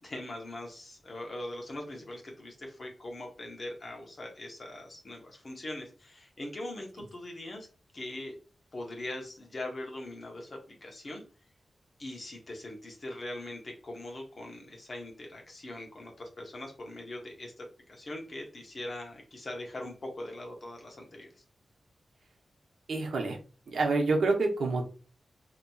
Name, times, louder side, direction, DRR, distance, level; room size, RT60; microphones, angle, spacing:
voice 1, 0.0-7.7 7.9-8.3 8.7-11.2 12.0-21.3, left 1 dB, 40° left, 1 dB, 0.7 m, -41 dB
voice 2, 22.9-23.4 23.7-24.9, right 3 dB, 85° right, 2 dB, 0.7 m, -27 dB
2.8 x 2.7 x 2.2 m, 0.37 s
wide cardioid pair, 155°, 0 cm